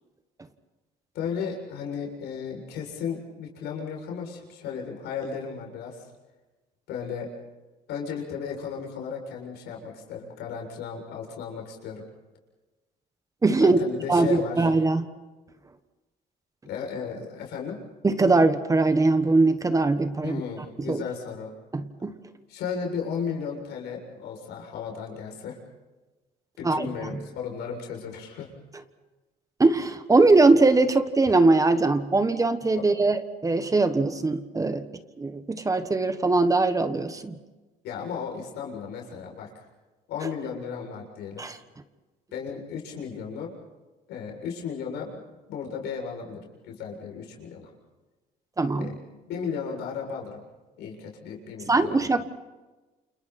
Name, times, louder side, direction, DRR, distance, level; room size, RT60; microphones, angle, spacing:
voice 1, 1.1-6.0 6.9-7.3 7.9-12.0 13.6-14.7 16.6-17.8 20.2-21.5 22.5-25.6 26.6-28.5 32.8-32.9 37.8-39.7 40.1-41.4 42.3-43.5 44.1-47.7 48.8-49.0 49.3-50.4 50.8-52.1, left 6 dB, 80° left, 0 dB, 7.2 m, -35 dB
voice 2, 13.4-13.8 14.1-15.0 18.0-20.4 20.9-21.0 21.7-22.1 26.6-26.9 29.6-34.8 35.2-37.3 41.4-41.6 48.6-48.9 51.7-52.2, right 3 dB, 20° right, 10 dB, 1.4 m, -21 dB
29.0 x 29.0 x 4.4 m, 1.2 s
cardioid pair, 110°, 17 cm